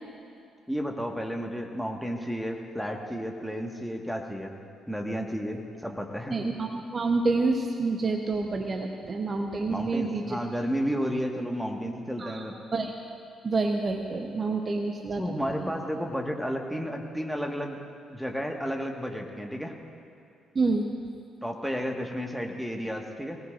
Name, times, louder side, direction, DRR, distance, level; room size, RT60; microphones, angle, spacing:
voice 1, 0.7-6.4 9.7-12.6 15.2-17.8 18.1-19.8 21.4-23.4, equal, ahead, 2 dB, 1.8 m, -32 dB
voice 2, 6.3-10.4 12.2-12.9 13.4-15.2 15.6-15.7 20.5-20.9, right 3 dB, 35° right, 3 dB, 1.1 m, -28 dB
23.0 x 17.5 x 2.7 m, 2.7 s
figure-of-eight pair, 45°, 0 cm